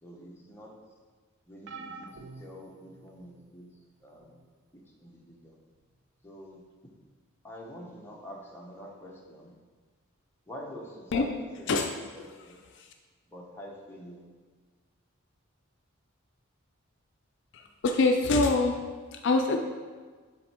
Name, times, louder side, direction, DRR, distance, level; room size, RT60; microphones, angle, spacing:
voice 1, 0.0-0.8 1.5-4.4 4.7-5.6 6.2-6.7 7.4-9.6 10.5-11.3 11.6-11.8 12.1-12.6 13.3-14.2, equal, 10° left, -2 dB, 0.8 m, -46 dB
sound 1, 1.7-3.5 4.2-4.5 5.7-5.8, right 4 dB, 55° right, 0.4 m, -47 dB
voice 2, 17.5-18.8 19.1-19.6, left 3 dB, 55° left, 4 dB, 0.4 m, -24 dB
7.6 x 3.4 x 4.3 m, 1.5 s
head